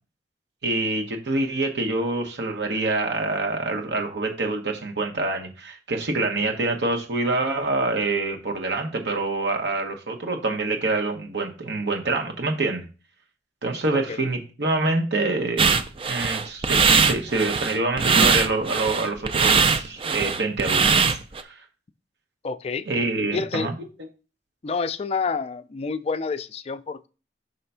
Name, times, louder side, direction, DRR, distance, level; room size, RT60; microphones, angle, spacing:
voice 1, 0.6-12.8 13.6-15.8 16.1-21.2 21.5-21.6 22.9-23.7, right 2 dB, 75° right, 1.1 m, -26 dB
voice 2, 13.9-14.3 22.4-22.9 23.3-23.7 24.6-27.1, left 4 dB, 35° left, 0.4 m, -28 dB
sound 1, 15.6-21.4, right 5 dB, 30° right, 0.4 m, -21 dB
5.6 x 3.4 x 5.5 m
head